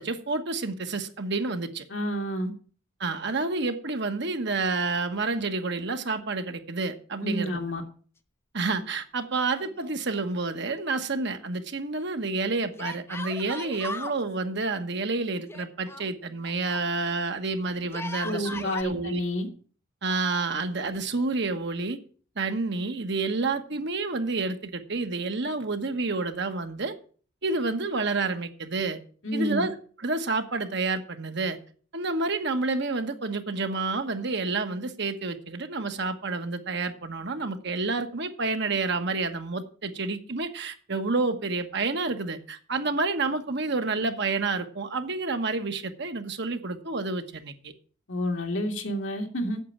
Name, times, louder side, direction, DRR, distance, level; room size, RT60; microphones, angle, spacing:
voice 1, 0.0-1.8 3.0-7.6 8.5-19.2 20.0-22.0 22.4-26.9 27.4-29.0 29.3-29.7 30.0-31.6 31.9-47.7, right 3 dB, 60° right, 1.2 m, -29 dB
voice 2, 1.9-2.5 7.2-7.8 18.2-19.5 29.2-29.7 48.1-49.6, equal, 65° left, 2.2 m, -29 dB
Yell, 9.5-10.4 10.7-10.8 12.8-14.2 15.5-16.9 17.8-18.8, left 2 dB, 15° left, 0.8 m, -38 dB
8.5 x 7.7 x 8.4 m
head